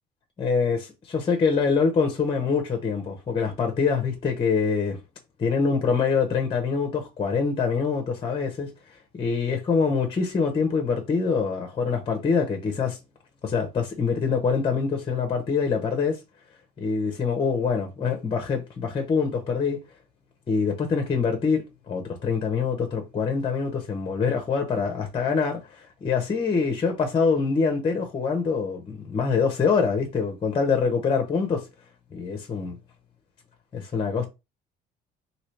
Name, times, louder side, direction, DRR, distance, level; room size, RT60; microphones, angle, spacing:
voice 1, 0.4-5.0 5.4-8.7 9.1-13.0 13.4-16.2 16.8-19.8 20.5-31.6 32.1-32.8 33.7-34.2, left 5 dB, 30° left, 0.7 m, -25 dB
3.0 x 2.8 x 3.1 m
cardioid pair, 110°, 19 cm